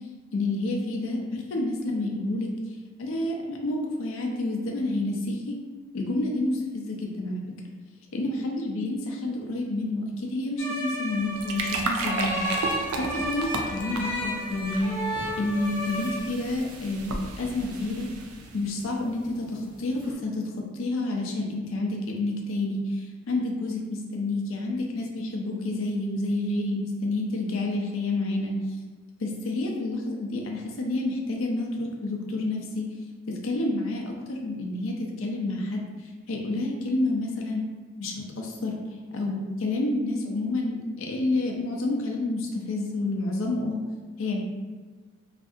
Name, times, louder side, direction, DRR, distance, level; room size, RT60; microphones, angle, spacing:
voice 1, 0.3-2.5 3.0-5.5 5.9-7.4 8.1-12.4 13.0-14.9 15.4-18.1 18.5-28.5 29.2-32.9 33.3-35.9 36.3-37.6 38.0-38.7 39.1-43.8 44.2-44.4, left 2 dB, 65° left, 0 dB, 0.5 m, -29 dB
sound 1, 10.6-16.2, equal, 10° left, 0.8 m, -32 dB
sound 2, 11.1-18.7, right 3 dB, 80° right, 0.3 m, -35 dB
sound 3, 14.4-20.2, equal, 20° right, 0.9 m, -49 dB
2.6 x 2.4 x 2.4 m, 1.4 s
head